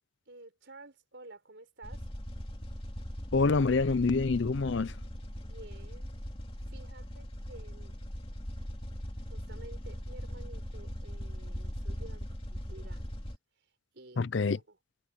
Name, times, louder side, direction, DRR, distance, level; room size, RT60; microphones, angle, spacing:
voice 1, 0.3-2.0 5.4-6.1 6.6-8.0 9.2-13.2 13.6-14.8, right 2 dB, 60° right, 5.0 m, -52 dB
sound 1, 1.8-13.4, equal, 30° left, 2.3 m, -40 dB
voice 2, 3.3-4.9 14.2-14.6, left 4 dB, 65° left, 0.5 m, -26 dB
head